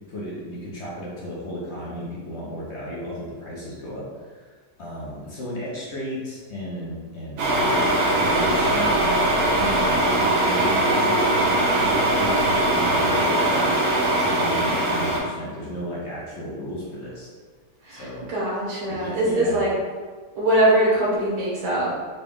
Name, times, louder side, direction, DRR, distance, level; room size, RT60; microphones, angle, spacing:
voice 1, 0.1-7.5 8.2-8.9 9.3-17.3 17.9-18.2 18.9-19.6, equal, 55° left, -6 dB, 0.9 m, -34 dB
sound 1, 7.4-15.2, right 1 dB, 60° right, 1.0 m, -21 dB
voice 2, 17.8-19.7 20.4-22.0, right 1 dB, 85° right, -6 dB, 1.8 m, -22 dB
4.0 x 2.2 x 3.5 m, 1.5 s
omnidirectional pair, 1.7 m